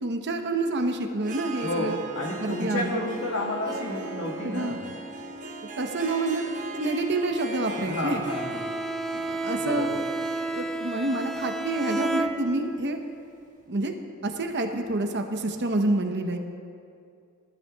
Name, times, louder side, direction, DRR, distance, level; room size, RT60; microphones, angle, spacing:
voice 1, 0.0-2.0 2.4-3.0 4.4-4.8 5.8-8.2 9.2-9.9 10.5-13.0 13.7-13.9 14.2-16.4, right 2 dB, 55° right, 4 dB, 0.9 m, -28 dB
Harp, 1.2-13.1, right 2 dB, 35° right, 1.1 m, -39 dB
voice 2, 1.6-4.8 7.7-8.7 9.6-10.0, left 1 dB, 65° left, -2 dB, 1.8 m, -31 dB
Bowed string instrument, 8.3-12.9, right 2 dB, ahead, 0.5 m, -31 dB
18.5 x 12.5 x 2.3 m, 2.4 s
head